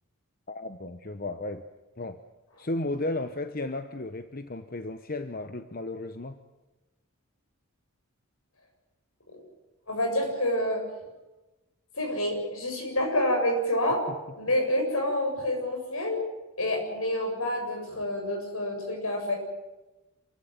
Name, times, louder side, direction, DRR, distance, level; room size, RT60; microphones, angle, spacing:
voice 1, 0.5-1.6 2.0-2.2 2.6-6.4, left 2 dB, 40° left, 9 dB, 0.9 m, -34 dB
voice 2, 9.9-10.8 11.9-14.0 14.4-16.3 16.6-19.4, left 1 dB, 70° left, 2 dB, 7.6 m, -28 dB
27.0 x 15.5 x 9.4 m, 1.1 s
head